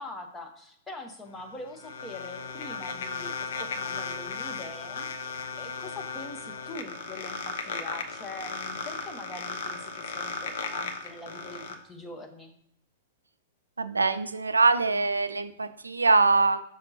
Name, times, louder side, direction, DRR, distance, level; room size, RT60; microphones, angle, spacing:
voice 1, 0.0-12.5, left 2 dB, 15° left, 3 dB, 1.1 m, -43 dB
sound 1, 1.3-11.7, left 5 dB, 60° left, 0.8 m, -36 dB
voice 2, 13.8-16.6, right 3 dB, 80° right, 12 dB, 0.4 m, -23 dB
6.7 x 5.9 x 2.7 m, 0.71 s
figure-of-eight pair, 105°, 0 cm